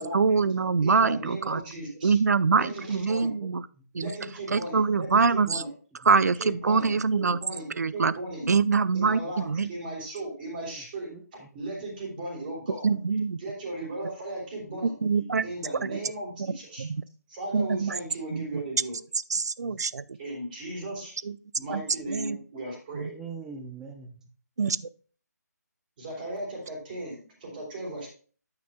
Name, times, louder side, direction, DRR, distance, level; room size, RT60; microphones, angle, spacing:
voice 1, 0.0-1.6 2.0-3.6 3.9-4.1 4.5-5.6 6.1-7.4 7.8-8.1 8.5-9.7 12.8-13.4 15.0-15.5 15.8-16.0 16.4-16.5 16.8-17.0 17.5-18.0 18.3-18.6 19.3-20.0 21.2-21.3 21.7-21.8 22.1-22.4 22.9-23.1 24.6-24.8, right 5 dB, 65° right, 0.5 m, -24 dB
voice 2, 0.8-2.2 2.5-3.3 4.0-5.7 6.3-8.5 8.9-12.9 13.4-14.9 15.4-16.9 17.3-18.9 20.2-21.2 21.6-23.1 26.0-28.1, right 1 dB, 30° right, 3.2 m, -37 dB
voice 3, 11.1-11.5 12.9-13.0 14.7-15.4 18.6-18.8 19.6-19.8 23.1-24.3, right 5 dB, 5° right, 0.5 m, -45 dB
9.1 x 8.9 x 2.2 m
figure-of-eight pair, 155°, 10 cm